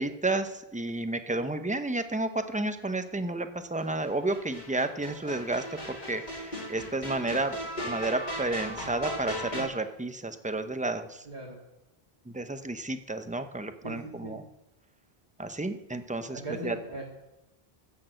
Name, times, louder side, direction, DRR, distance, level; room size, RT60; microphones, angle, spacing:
voice 1, 0.0-7.6 7.8-11.1 12.3-14.4 15.4-16.8, right 2 dB, 10° right, 9 dB, 0.6 m, -31 dB
sound 1, 4.0-9.6, equal, 45° left, 2.7 m, -37 dB
voice 2, 11.2-11.6 13.8-14.4 16.3-17.1, right 1 dB, 45° right, -4 dB, 2.1 m, -39 dB
14.0 x 6.6 x 7.7 m, 0.94 s
omnidirectional pair, 1.0 m